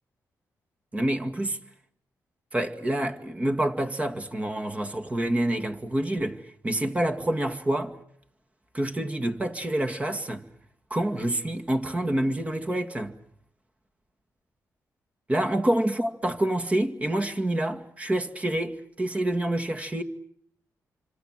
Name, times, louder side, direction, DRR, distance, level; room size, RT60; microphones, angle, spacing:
voice 1, 0.9-1.6 2.5-7.9 8.7-10.4 10.9-13.2 15.3-20.0, right 1 dB, 20° right, 2.1 m, -27 dB
26.5 x 26.0 x 7.8 m
cardioid pair, 90°, 6 cm